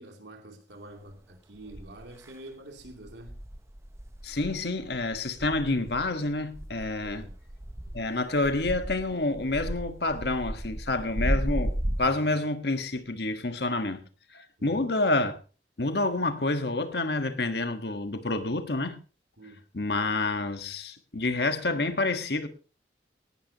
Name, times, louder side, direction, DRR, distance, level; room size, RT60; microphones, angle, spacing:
voice 1, 0.0-3.3 7.0-7.3 14.6-14.8 19.4-19.6, right 1 dB, 80° right, 2.9 m, -46 dB
sound 1, 1.1-1.2 1.7-2.3 2.8-12.0, equal, 15° right, 0.7 m, -34 dB
voice 2, 4.2-7.2 7.9-14.0 14.3-15.4 15.8-19.0 19.7-22.5, left 2 dB, 65° left, 1.5 m, -28 dB
18.0 x 12.0 x 2.9 m
head